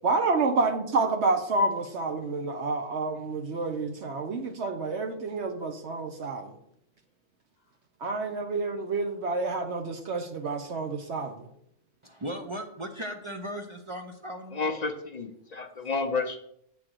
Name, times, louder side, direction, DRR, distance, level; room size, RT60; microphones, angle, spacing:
voice 1, 0.0-6.5 8.0-11.5, right 3 dB, 60° right, 5 dB, 1.0 m, -29 dB
voice 2, 12.0-14.7 15.8-15.9, equal, 35° right, 4 dB, 0.5 m, -37 dB
voice 3, 14.5-16.4, left 4 dB, 50° left, 6 dB, 0.5 m, -31 dB
8.3 x 3.8 x 6.1 m, 0.73 s
omnidirectional pair, 1.4 m